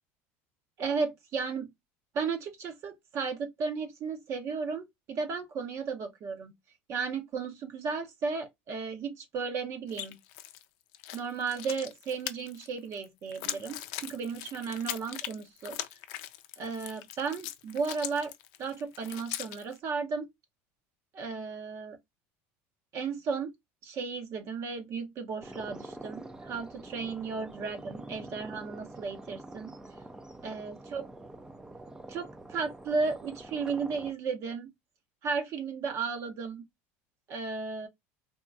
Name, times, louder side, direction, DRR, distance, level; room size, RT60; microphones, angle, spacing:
voice 1, 0.8-1.7 2.1-6.5 6.9-10.2 11.1-15.8 16.6-18.3 18.6-20.3 21.1-22.0 22.9-23.5 23.8-29.7 30.4-31.0 32.1-34.7 35.2-36.7 37.3-37.9, right 5 dB, 45° right, 0.7 m, -34 dB
sound 1, 9.9-10.6 10.9-19.8, left 13 dB, 70° left, 0.5 m, -40 dB
sound 2, 25.4-34.1, right 2 dB, 10° right, 0.4 m, -46 dB
3.6 x 2.2 x 2.3 m
supercardioid pair, 110°, 7 cm